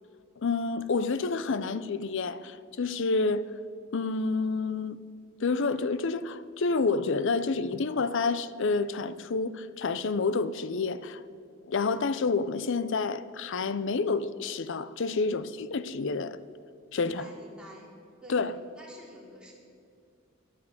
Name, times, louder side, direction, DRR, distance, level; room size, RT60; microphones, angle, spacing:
voice 1, 0.4-3.5 3.9-5.0 5.4-11.2 11.7-16.4 16.9-17.2 18.3-18.5, left 4 dB, 65° left, 0.6 m, -29 dB
voice 2, 16.9-17.9 18.2-18.5 18.8-19.5, equal, 5° right, 3.1 m, -49 dB
11.5 x 9.5 x 9.5 m
head